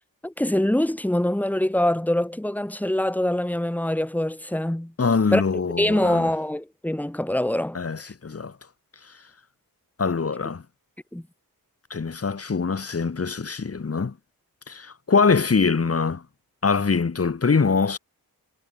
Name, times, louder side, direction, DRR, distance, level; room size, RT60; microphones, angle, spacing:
voice 1, 0.2-4.9 5.3-7.8 11.1-11.2, left 1 dB, 5° left, 1.4 m, -24 dB
voice 2, 5.0-6.3 7.7-8.5 10.0-10.6 11.9-14.1 14.7-16.2 16.6-18.0, left 5 dB, 40° left, 1.5 m, -23 dB
wide cardioid pair, 70°, 37 cm